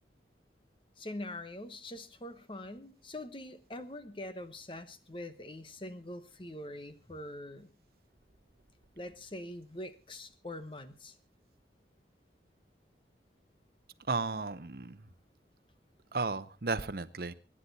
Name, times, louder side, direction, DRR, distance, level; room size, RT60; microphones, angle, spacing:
voice 1, 1.0-7.7 9.0-11.2, left 1 dB, 30° left, 11 dB, 1.1 m, -44 dB
voice 2, 14.1-15.0 16.1-17.3, right 4 dB, 55° right, 13 dB, 0.8 m, -34 dB
24.5 x 10.0 x 4.1 m, 0.32 s
head